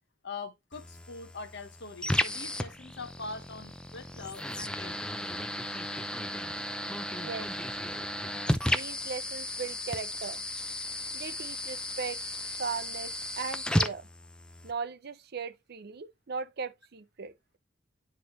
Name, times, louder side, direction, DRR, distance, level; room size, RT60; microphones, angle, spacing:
voice 1, 0.2-5.2 6.5-6.6, left 3 dB, 65° left, 1.3 m, -43 dB
sound 1, 0.7-14.7, left 1 dB, 5° left, 0.5 m, -34 dB
voice 2, 7.2-7.5 8.7-10.4 11.1-12.2 12.6-14.1 14.6-17.3, right 5 dB, 55° right, 0.6 m, -38 dB
9.8 x 4.0 x 3.1 m
head